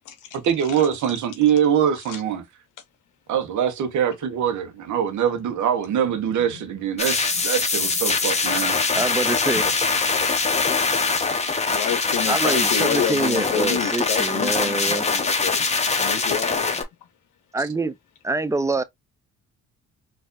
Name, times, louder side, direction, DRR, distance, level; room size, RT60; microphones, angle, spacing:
voice 1, 0.3-2.4 3.3-8.9, right 8 dB, 75° right, 0.9 m, -23 dB
sound 1, 7.0-16.8, left 4 dB, 20° left, 0.8 m, -23 dB
voice 2, 8.9-9.7 12.3-15.1 17.5-17.9 18.2-18.8, right 2 dB, 10° right, 0.4 m, -25 dB
voice 3, 11.7-15.7 16.0-16.7, left 9 dB, 85° left, 0.7 m, -29 dB
4.3 x 2.6 x 2.4 m
cardioid pair, 90°, 30 cm